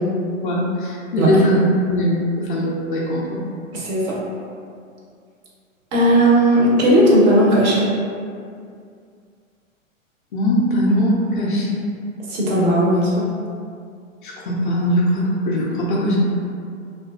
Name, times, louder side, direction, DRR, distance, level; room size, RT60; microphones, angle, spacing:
voice 1, 0.4-1.6 1.9-3.4 10.3-11.8 14.2-16.2, equal, 40° left, -5 dB, 0.4 m, -20 dB
voice 2, 3.7-4.2 5.9-7.9 12.3-13.3, right 1 dB, 35° right, -5 dB, 0.6 m, -16 dB
2.6 x 2.4 x 2.3 m, 2.3 s
figure-of-eight pair, 105°, 41 cm